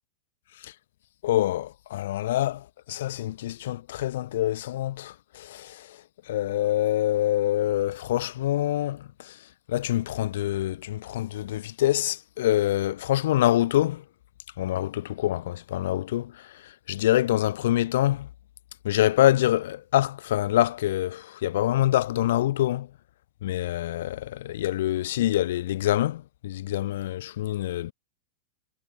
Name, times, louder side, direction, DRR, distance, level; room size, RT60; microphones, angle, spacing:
voice 1, 1.2-6.0 6.3-9.4 9.7-14.0 14.6-18.3 18.8-22.9 23.4-27.9, left 14 dB, 55° left, 6.3 m, -26 dB
figure-of-eight pair, 90°, 0 cm